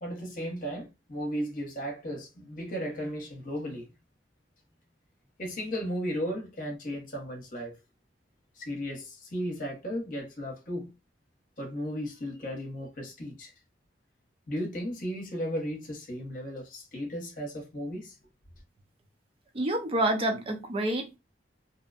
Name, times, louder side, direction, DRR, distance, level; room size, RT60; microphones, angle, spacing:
voice 1, 0.0-3.9 5.4-7.7 8.6-10.9 11.6-13.5 14.5-18.1, equal, 50° left, 0.9 m, -35 dB
voice 2, 19.5-21.2, right 1 dB, 30° right, 0.5 m, -28 dB
2.7 x 2.1 x 2.4 m
head